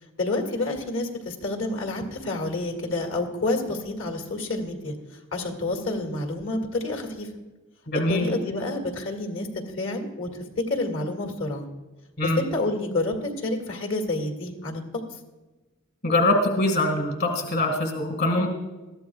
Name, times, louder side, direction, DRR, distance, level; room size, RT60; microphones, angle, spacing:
voice 1, 0.2-4.9 5.3-7.3 7.9-11.7 12.2-14.8, left 2 dB, 70° left, 3 dB, 2.0 m, -29 dB
voice 2, 7.9-8.3 12.2-12.4 16.0-18.5, left 1 dB, 50° left, 3 dB, 1.8 m, -23 dB
21.0 x 14.0 x 2.3 m, 1.2 s
head